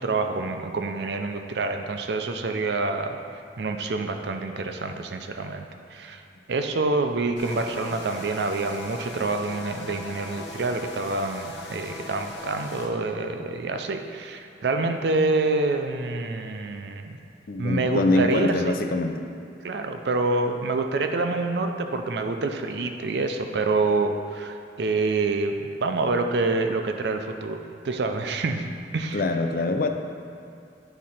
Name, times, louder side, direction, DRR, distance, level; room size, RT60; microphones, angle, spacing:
voice 1, 0.0-3.2 3.6-6.2 6.5-17.2 17.6-18.8 19.6-28.6 28.9-29.2, right 3 dB, 65° right, 6 dB, 0.5 m, -27 dB
sound 1, 7.4-12.9, left 3 dB, 75° left, 1.0 m, -39 dB
voice 2, 17.5-19.2 29.1-29.9, left 2 dB, 50° left, 6 dB, 0.4 m, -24 dB
10.0 x 3.7 x 4.3 m, 2.6 s
head